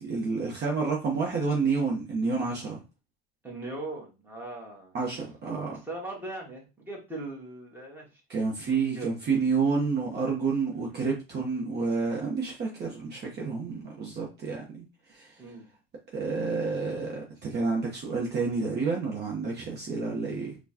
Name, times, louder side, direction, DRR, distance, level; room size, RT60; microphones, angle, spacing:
voice 1, 0.0-2.8 4.9-5.8 8.3-15.4 16.1-20.6, right 4 dB, 35° right, -1 dB, 0.9 m, -29 dB
voice 2, 3.4-4.9 5.7-8.2 8.7-9.1 15.4-15.7, right 2 dB, 5° right, -2 dB, 1.5 m, -40 dB
4.3 x 2.3 x 2.8 m, 0.29 s
supercardioid pair, 115°, 29 cm